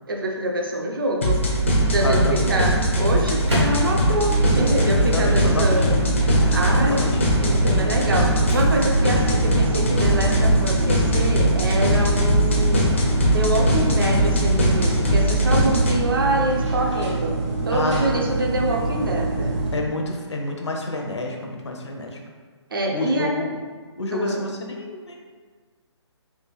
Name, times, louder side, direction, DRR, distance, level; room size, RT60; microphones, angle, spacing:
voice 1, 0.1-1.4 1.9-6.0 6.5-7.1 7.4-12.9 13.3-17.3 17.6-19.6 22.7-23.4 24.1-24.4, right 1 dB, 50° right, 0 dB, 0.5 m, -25 dB
sound 1, 1.2-16.0, equal, 25° left, 0.4 m, -21 dB
voice 2, 2.0-2.5 5.0-5.8 6.9-7.2 13.9-14.1 17.7-18.2 19.7-22.2 22.9-23.5 24.0-25.2, left 2 dB, 75° left, 1 dB, 0.7 m, -28 dB
Microwave oven, 3.0-9.0, equal, 70° right, 1.2 m, -33 dB
sound 2, 4.2-19.8, right 1 dB, 90° right, 1.4 m, -25 dB
3.4 x 2.4 x 3.3 m, 1.5 s
hypercardioid pair, 175°, 15 cm